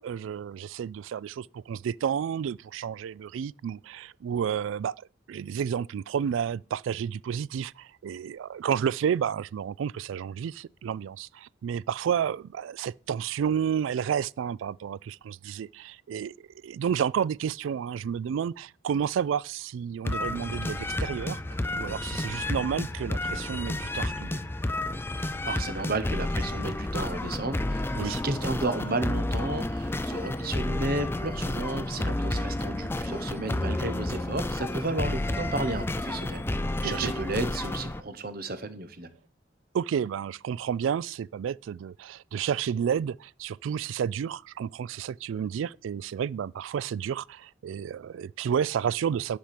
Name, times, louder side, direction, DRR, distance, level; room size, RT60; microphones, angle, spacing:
voice 1, 0.0-4.9 5.3-21.4 21.7-24.4 27.9-28.2 32.3-32.4 36.8-37.1 39.7-49.4, right 8 dB, 80° right, 0.3 m, -31 dB
sound 1, 20.0-38.0, left 1 dB, 10° left, 0.4 m, -31 dB
voice 2, 25.2-39.1, right 2 dB, 50° right, 1.0 m, -33 dB
10.0 x 4.9 x 5.9 m
head